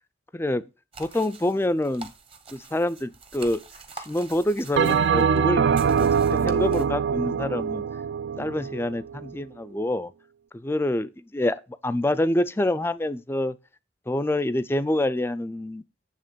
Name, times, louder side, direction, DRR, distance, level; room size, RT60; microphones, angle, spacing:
voice 1, 0.3-0.6 1.0-2.1 2.5-3.6 4.0-5.6 6.0-7.8 8.4-10.1 10.5-13.6 14.1-15.8, left 1 dB, 15° left, 0.4 m, -26 dB
sound 1, 0.9-6.8, right 4 dB, 30° right, 0.9 m, -45 dB
Bell, 4.8-9.4, right 7 dB, 65° right, 0.3 m, -23 dB
9.0 x 3.4 x 6.7 m
head